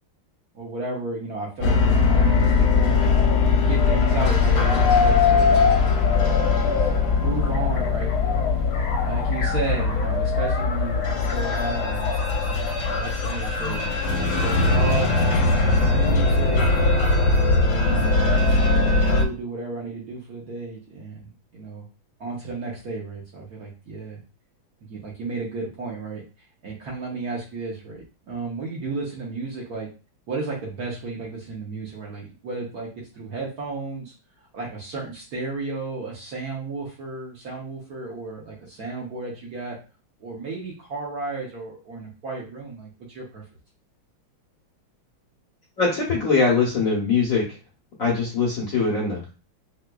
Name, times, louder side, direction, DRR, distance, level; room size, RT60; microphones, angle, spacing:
voice 1, 0.5-3.1 3.7-5.7 6.4-6.9 7.2-8.4 9.0-14.2 14.4-16.9 17.8-21.9 22.2-24.2 24.9-26.2 26.6-29.9 30.3-39.8 40.2-43.4, right 3 dB, 60° right, -3 dB, 1.1 m, -33 dB
sound 1, 1.6-19.2, left 4 dB, 85° left, 1.4 m, -20 dB
voice 2, 45.8-47.4 48.0-49.3, left 4 dB, 55° left, -3 dB, 1.0 m, -22 dB
4.5 x 2.3 x 2.2 m, 0.33 s
omnidirectional pair, 2.3 m